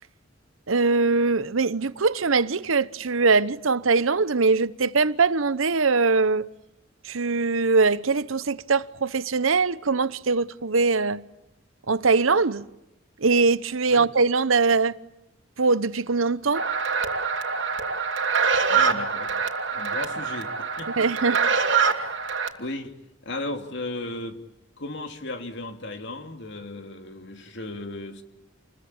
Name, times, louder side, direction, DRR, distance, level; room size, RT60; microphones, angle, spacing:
voice 1, 0.7-6.5 7.0-11.2 11.9-12.7 13.2-15.0 15.6-16.6 21.0-21.4 21.9-22.1, right 4 dB, 80° right, 0.9 m, -22 dB
sound 1, 16.5-22.5, right 5 dB, 65° right, 2.8 m, -25 dB
voice 2, 18.7-19.3 19.7-21.3 22.6-23.0 23.2-24.4 24.8-28.2, left 2 dB, 60° left, 2.9 m, -35 dB
28.5 x 21.5 x 8.9 m
head